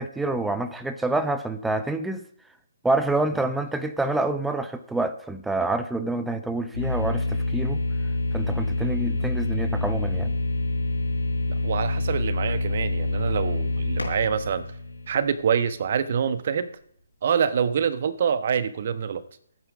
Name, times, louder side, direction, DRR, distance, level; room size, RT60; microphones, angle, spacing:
voice 1, 0.0-2.2 2.8-7.8 8.3-10.3, right 2 dB, 5° right, 9 dB, 0.7 m, -27 dB
sound 1, 6.7-15.6, left 2 dB, 90° left, 5.8 m, -27 dB
voice 2, 11.5-14.7 15.1-16.7 17.2-19.2, right 7 dB, 50° right, 12 dB, 1.0 m, -25 dB
16.0 x 9.3 x 5.2 m, 0.67 s
figure-of-eight pair, 140°, 0 cm